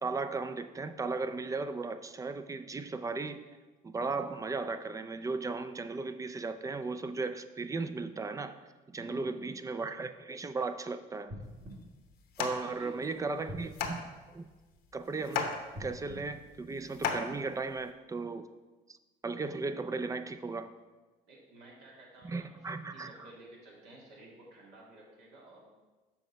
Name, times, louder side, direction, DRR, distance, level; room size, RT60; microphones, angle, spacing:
voice 1, 0.0-3.4 3.8-8.6 8.9-11.3 12.4-14.0 14.3-14.5 14.9-15.5 15.8-18.5 19.2-20.7 22.2-23.1, right 3 dB, 20° right, 10 dB, 0.4 m, -36 dB
voice 2, 9.0-9.5 12.6-13.5 21.3-25.9, right 1 dB, 80° right, -3 dB, 2.3 m, -52 dB
sound 1, 11.3-12.9 13.4-15.0 15.6-17.3 17.9-18.0, equal, 50° right, 1.8 m, -48 dB
sound 2, 11.5-17.9, left 6 dB, 70° left, 0.9 m, -38 dB
7.0 x 5.2 x 4.7 m, 1.2 s
cardioid pair, 110°, 17 cm